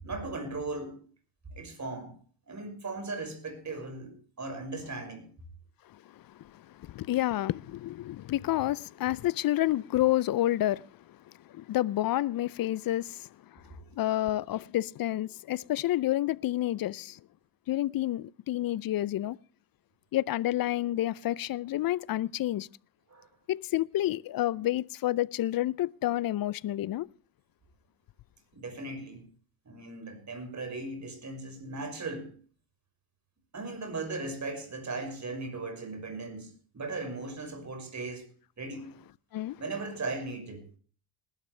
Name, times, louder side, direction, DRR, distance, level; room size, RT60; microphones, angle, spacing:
voice 1, 0.0-1.0 1.6-2.1 2.5-5.3 23.1-23.3 28.5-29.3 29.7-32.3 33.5-38.3 38.6-38.9 39.6-40.6, right 3 dB, 35° right, 5.7 m, -38 dB
voice 2, 6.4-10.9 11.5-13.6 13.9-17.2 17.7-19.4 20.1-22.7 23.5-27.1 39.3-39.6, left 14 dB, 45° left, 0.5 m, -29 dB
20.0 x 12.5 x 3.3 m
supercardioid pair, 75°, 50 cm